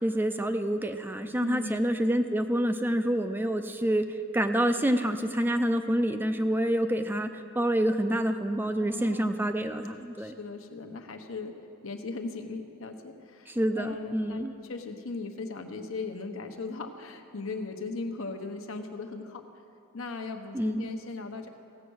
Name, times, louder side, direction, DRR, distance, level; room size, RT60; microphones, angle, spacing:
voice 1, 0.0-4.0 4.3-10.4 13.5-14.5 20.5-20.9, right 1 dB, 10° right, 8 dB, 0.4 m, -27 dB
voice 2, 1.4-1.9 8.8-9.4 10.2-11.5 11.8-19.4 19.9-21.5, left 3 dB, 80° left, 5 dB, 1.0 m, -38 dB
16.0 x 8.1 x 6.3 m, 2.6 s
head